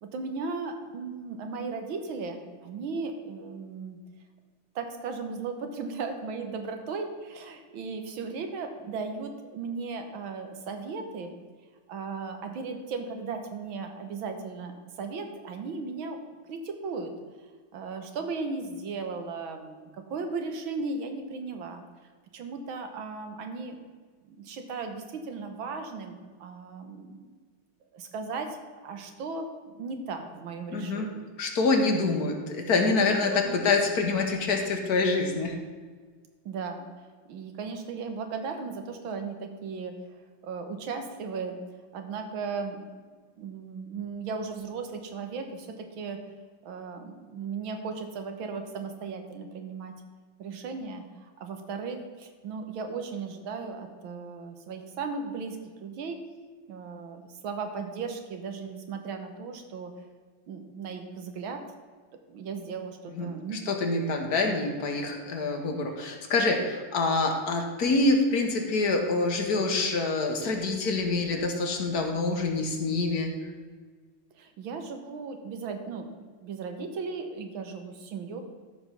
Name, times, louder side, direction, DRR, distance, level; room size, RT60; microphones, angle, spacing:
voice 1, 0.0-4.0 4.8-11.3 11.9-14.7 15.0-16.2 16.5-17.1 17.7-21.8 22.3-23.8 24.3-27.2 27.9-29.5 29.7-31.2 33.3-33.6 36.5-36.9 37.3-39.9 40.4-41.6 41.9-42.8 43.4-46.2 46.6-49.9 50.4-51.0 51.4-56.2 56.7-59.9 60.5-61.6 62.3-63.8 74.4-76.1 76.4-78.4, right 4 dB, 80° right, 5 dB, 1.9 m, -36 dB
voice 2, 30.7-31.1 31.4-35.6 63.1-63.3 63.7-73.3, left 3 dB, 50° left, 3 dB, 1.7 m, -26 dB
13.5 x 5.1 x 5.8 m, 1.5 s
omnidirectional pair, 2.2 m